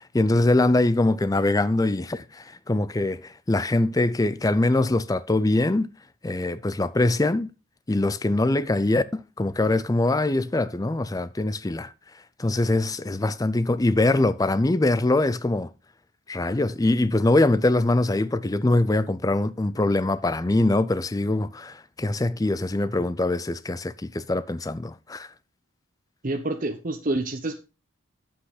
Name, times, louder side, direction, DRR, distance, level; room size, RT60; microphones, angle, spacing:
voice 1, 0.0-5.9 6.2-7.5 7.9-11.9 12.4-15.7 16.3-25.3, left 2 dB, 15° left, 0.4 m, -23 dB
voice 2, 26.2-27.6, right 2 dB, 40° right, 0.8 m, -27 dB
8.7 x 7.7 x 4.0 m
head